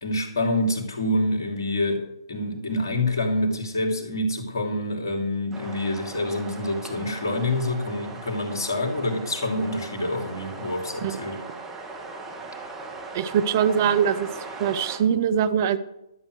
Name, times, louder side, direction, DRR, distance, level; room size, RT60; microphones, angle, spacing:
voice 1, 0.0-11.4, left 1 dB, 55° left, 2 dB, 2.9 m, -27 dB
sound 1, 5.5-15.0, right 3 dB, 10° right, 1.8 m, -39 dB
voice 2, 13.1-14.3 14.6-15.8, right 8 dB, 40° right, 12 dB, 0.6 m, -22 dB
12.5 x 7.5 x 6.4 m, 0.86 s
figure-of-eight pair, 130°, 2 cm